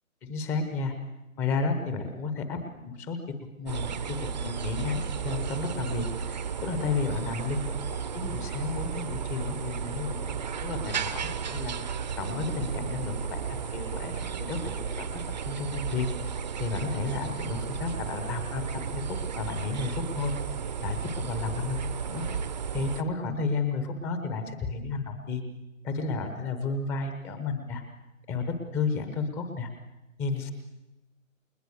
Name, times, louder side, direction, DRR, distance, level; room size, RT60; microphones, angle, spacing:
voice 1, 0.2-0.9 1.4-3.2 3.6-7.6 8.1-16.3 16.6-20.3 20.8-21.8 22.0-22.2 22.7-25.4 25.8-27.8 28.3-29.7 30.2-30.5, left 4 dB, 5° left, 7 dB, 1.0 m, -32 dB
sound 1, 3.7-23.0, right 7 dB, 30° right, 1.0 m, -34 dB
29.5 x 27.5 x 6.6 m, 1.0 s
figure-of-eight pair, 145°, 40 cm